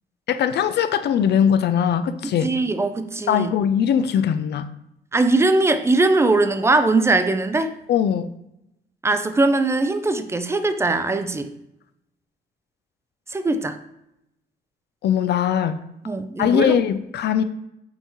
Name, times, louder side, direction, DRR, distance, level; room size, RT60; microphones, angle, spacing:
voice 1, 0.3-2.5 3.3-4.7 7.9-8.3 15.0-15.8 16.4-17.4, left 8 dB, 60° left, 11 dB, 0.4 m, -20 dB
voice 2, 2.2-3.5 5.1-7.7 9.0-11.5 13.3-13.8 16.1-16.7, right 2 dB, 15° right, 9 dB, 0.4 m, -20 dB
5.5 x 2.8 x 2.9 m, 0.83 s
cardioid pair, 90°, 20 cm